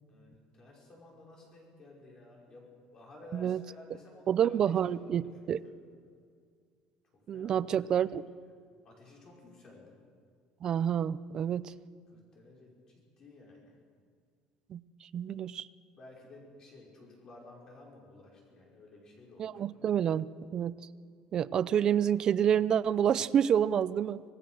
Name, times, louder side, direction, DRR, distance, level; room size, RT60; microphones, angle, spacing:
voice 1, 0.1-5.8 7.1-7.9 8.8-10.0 12.1-12.8 13.2-13.7 16.0-19.6, left 2 dB, 30° left, -1 dB, 5.3 m, -54 dB
voice 2, 4.3-5.6 7.3-8.3 10.6-11.7 14.7-15.7 19.4-20.7 21.3-24.2, right 9 dB, 30° right, 16 dB, 0.5 m, -28 dB
26.0 x 18.0 x 6.4 m, 2.1 s
cardioid pair, 170°, 2 cm